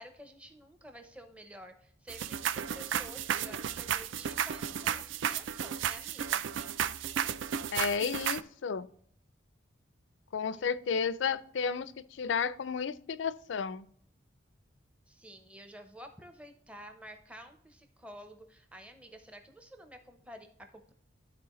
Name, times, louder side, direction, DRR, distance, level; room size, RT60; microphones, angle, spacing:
voice 1, 0.0-6.4 10.6-10.7 15.1-20.9, equal, 5° right, 0.7 m, -51 dB
sound 1, 2.1-8.4, right 9 dB, 75° right, 0.4 m, -33 dB
voice 2, 7.7-8.9 10.3-13.9, left 6 dB, 70° left, 0.4 m, -32 dB
12.0 x 4.2 x 3.1 m
head